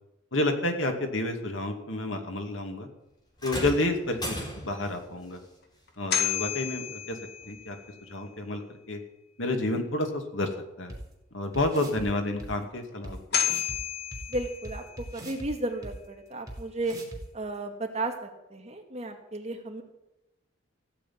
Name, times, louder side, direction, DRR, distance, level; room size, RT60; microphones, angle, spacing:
voice 1, 0.3-2.9 3.4-5.4 6.0-7.2 7.4-8.6 8.9-9.0 9.4-10.5 10.8-10.9 11.3-13.5, left 2 dB, 75° left, 5 dB, 2.4 m, -30 dB
sound 1, 3.4-4.9 6.4-6.6 7.4-7.5, equal, 20° left, 4.3 m, -36 dB
sound 2, 5.9-8.0 12.9-13.0 13.3-15.2, left 8 dB, 55° left, 2.3 m, -31 dB
sound 3, 10.9-11.0 11.5-12.1 12.4-12.5 13.0-13.1 13.4-13.8 14.1-15.5 15.8-15.9 16.5-16.6 16.8-17.2, right 1 dB, 15° right, 4.5 m, -41 dB
voice 2, 14.3-17.0 17.3-19.8, right 2 dB, 35° right, 3 dB, 2.3 m, -34 dB
15.5 x 8.0 x 9.5 m, 0.90 s
head